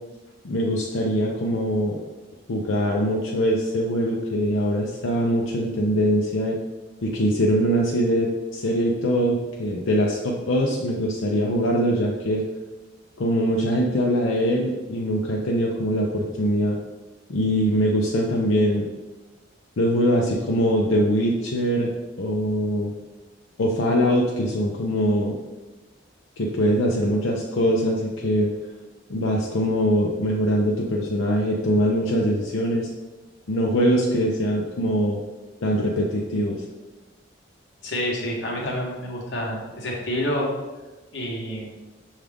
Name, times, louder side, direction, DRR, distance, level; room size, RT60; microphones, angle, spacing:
voice 1, 0.4-2.0 2.5-6.6 7.0-12.4 13.2-16.8 17.3-18.9 19.8-21.9 22.2-22.9 23.6-25.4 26.4-28.5 29.1-32.9 33.5-35.2 35.6-36.6, equal, 85° left, -2 dB, 0.5 m, -22 dB
voice 2, 37.8-40.5 41.1-41.7, equal, 60° left, -1 dB, 1.0 m, -28 dB
6.2 x 2.4 x 3.5 m, 1.2 s
head